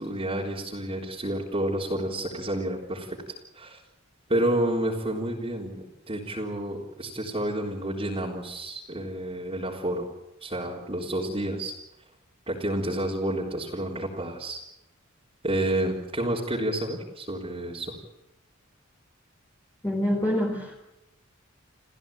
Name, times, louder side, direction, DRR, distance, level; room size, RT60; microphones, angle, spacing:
voice 1, 0.0-3.2 3.5-3.8 4.3-10.1 10.4-11.7 12.5-14.6 15.4-18.0, right 1 dB, 30° right, -3 dB, 3.8 m, -30 dB
voice 2, 19.8-20.7, left 1 dB, 10° left, -2 dB, 3.7 m, -26 dB
28.5 x 15.5 x 8.9 m, 0.88 s
head